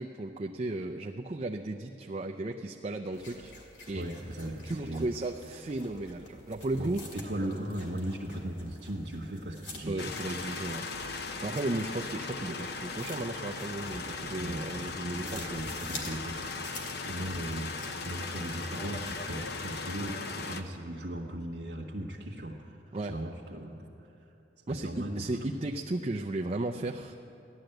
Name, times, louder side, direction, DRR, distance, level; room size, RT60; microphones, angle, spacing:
voice 1, 0.0-3.6 3.9-4.0 4.6-7.0 9.9-15.6 22.9-23.1 24.7-27.1, right 2 dB, 35° right, 2 dB, 0.5 m, -35 dB
sound 1, 3.1-19.3, left 2 dB, 80° left, 2.5 m, -49 dB
voice 2, 3.9-5.1 6.7-10.1 14.4-22.8 23.0-24.1 24.7-25.4, right 1 dB, 80° right, -3 dB, 1.4 m, -38 dB
sound 2, 10.0-20.6, left 4 dB, 60° left, 0.8 m, -38 dB
15.5 x 11.5 x 7.9 m, 2.9 s
head